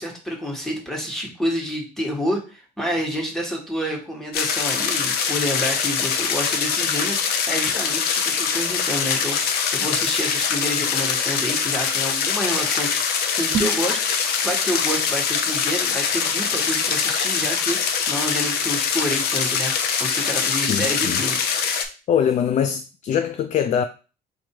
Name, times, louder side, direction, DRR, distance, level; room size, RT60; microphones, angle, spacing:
voice 1, 0.0-17.8 18.1-19.7 20.0-21.5, equal, 5° left, 1.5 m, -28 dB
sound 1, 4.3-21.8, left 6 dB, 70° left, 0.7 m, -23 dB
sound 2, 13.4-13.9, right 7 dB, 55° right, 1.0 m, -27 dB
voice 2, 20.7-21.2 22.1-23.8, left 8 dB, 45° left, 0.4 m, -22 dB
4.4 x 2.6 x 4.5 m
cardioid pair, 110°, 17 cm